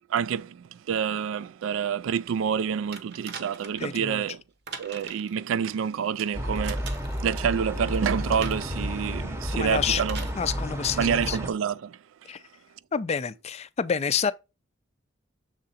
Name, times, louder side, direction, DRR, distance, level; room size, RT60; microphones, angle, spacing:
voice 1, 0.1-4.4 4.8-6.9 7.2-10.3 11.0-12.0, right 7 dB, 80° right, 0.3 m, -28 dB
sound 1, 2.9-3.9 4.7-5.4 6.6-7.2 8.4-8.8 10.0-10.4 11.5-11.6, right 5 dB, 55° right, 0.9 m, -41 dB
voice 2, 3.8-4.2 9.5-10.0 10.3-11.4 12.3-12.4 12.9-14.3, left 6 dB, 35° left, 0.4 m, -28 dB
sound 2, 6.3-11.5, equal, 15° right, 0.8 m, -31 dB
6.5 x 3.7 x 4.1 m
head